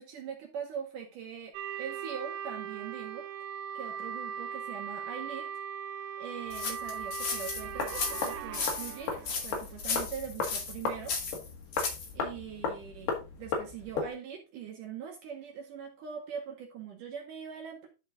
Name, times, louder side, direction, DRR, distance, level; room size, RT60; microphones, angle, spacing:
voice 1, 0.0-3.3 3.7-5.5 6.2-11.2 12.1-17.9, right 7 dB, 65° right, 2 dB, 2.4 m, -42 dB
sound 1, 1.5-9.6, right 8 dB, 85° right, 2.4 m, -39 dB
sound 2, 6.5-12.1, left 4 dB, 55° left, 2.5 m, -35 dB
sound 3, 7.5-14.1, left 5 dB, 80° left, 3.9 m, -36 dB
11.0 x 4.4 x 3.9 m, 0.29 s
omnidirectional pair, 4.5 m